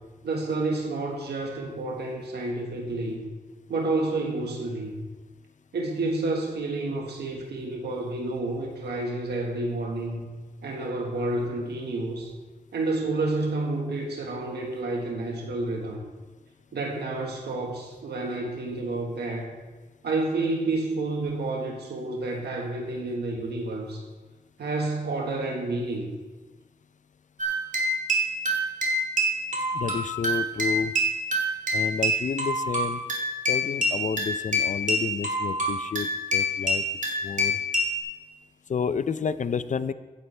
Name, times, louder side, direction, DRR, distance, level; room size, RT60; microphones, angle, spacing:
voice 1, 0.2-3.3 3.7-5.0 5.7-10.3 10.6-12.3 12.7-16.0 16.7-19.5 20.0-24.0 24.6-26.1, right 2 dB, 90° right, 0 dB, 1.5 m, -29 dB
sound 1, 27.4-38.0, equal, 50° right, 2.3 m, -26 dB
voice 2, 29.7-31.0 31.7-33.0 33.5-36.8 37.2-37.6 38.7-39.9, left 6 dB, 50° left, 14 dB, 0.5 m, -30 dB
15.5 x 9.9 x 3.4 m, 1.2 s
wide cardioid pair, 85°, 17 cm